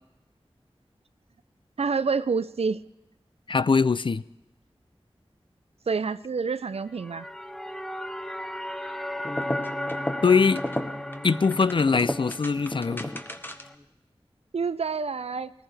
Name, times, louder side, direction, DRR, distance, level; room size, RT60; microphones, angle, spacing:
voice 1, 1.8-2.8 5.9-7.3 14.5-15.5, right 5 dB, 75° right, 15 dB, 0.4 m, -27 dB
voice 2, 3.5-4.2 10.2-10.6 11.2-13.1, left 5 dB, 55° left, 17 dB, 0.4 m, -22 dB
sound 1, 6.8-13.7, left 1 dB, 5° left, 0.6 m, -36 dB
sound 2, 9.2-13.8, left 1 dB, 20° left, 1.0 m, -34 dB
20.0 x 14.5 x 3.4 m, 0.95 s
wide cardioid pair, 50°, 10 cm